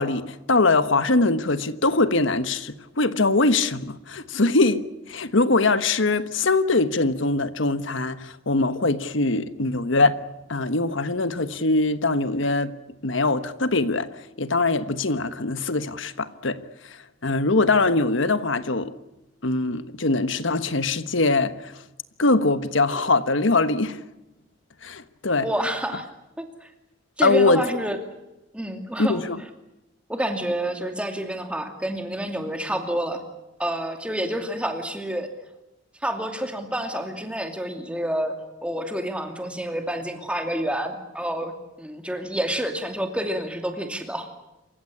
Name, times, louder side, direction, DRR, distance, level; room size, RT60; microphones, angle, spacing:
voice 1, 0.0-10.1 10.5-12.7 13.0-14.1 14.4-16.6 17.2-18.9 19.4-21.8 22.2-24.0 24.8-25.5 25.9-26.0 27.2-27.6 29.0-29.4, left 3 dB, 70° left, 1.3 m, -22 dB
voice 2, 25.4-26.1 26.4-26.7 27.2-28.0 28.5-29.2 30.1-33.2 33.6-35.3 36.0-38.4 38.6-41.5 41.8-44.3, right 1 dB, 5° right, 2.5 m, -28 dB
27.5 x 15.5 x 9.9 m
head